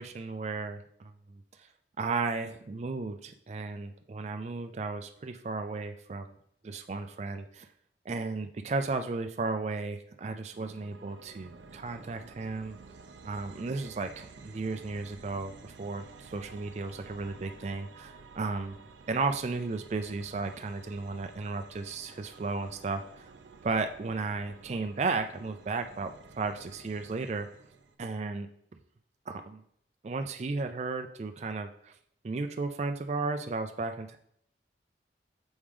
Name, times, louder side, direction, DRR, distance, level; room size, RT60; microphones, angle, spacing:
voice 1, 0.0-1.7 2.0-6.3 6.6-7.7 8.1-12.8 13.2-18.8 19.1-23.3 23.6-26.1 26.4-27.5 28.0-28.5 29.3-29.6 30.0-31.9 32.2-34.2, right 3 dB, 35° right, 6 dB, 0.4 m, -34 dB
sound 1, 10.5-27.9, right 4 dB, 85° right, 0.6 m, -52 dB
7.1 x 3.6 x 4.9 m, 0.69 s
head